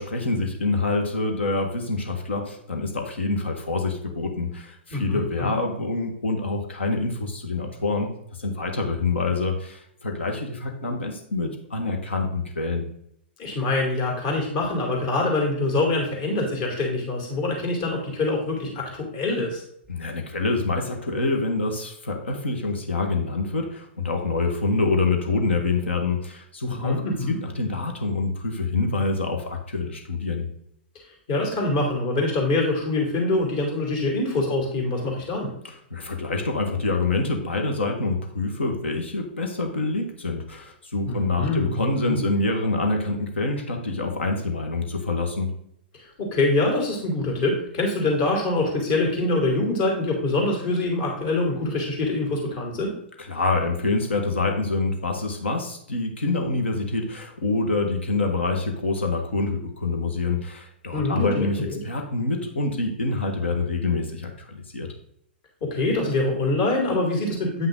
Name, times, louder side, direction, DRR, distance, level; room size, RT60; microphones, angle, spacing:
voice 1, 0.0-8.1 8.4-12.8 19.9-27.0 27.3-30.5 35.6-45.5 53.2-64.9, left 3 dB, 80° left, 3 dB, 1.7 m, -26 dB
voice 2, 4.9-5.6 13.4-19.6 26.6-27.4 31.3-35.5 41.1-42.2 46.2-52.9 60.9-61.8 65.6-67.7, left 2 dB, 50° left, 0 dB, 2.8 m, -25 dB
9.5 x 5.8 x 3.8 m, 0.71 s
hypercardioid pair, 115°, 6 cm